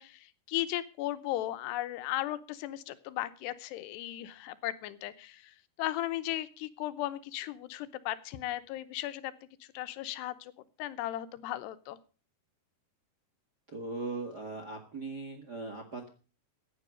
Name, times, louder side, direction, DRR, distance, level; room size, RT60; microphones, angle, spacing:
voice 1, 0.0-9.3 9.6-10.5 10.8-12.0, left 14 dB, 85° left, 13 dB, 3.0 m, -36 dB
voice 2, 13.7-16.1, right 3 dB, 40° right, 4 dB, 1.4 m, -39 dB
15.5 x 10.0 x 5.1 m, 0.36 s
omnidirectional pair, 4.7 m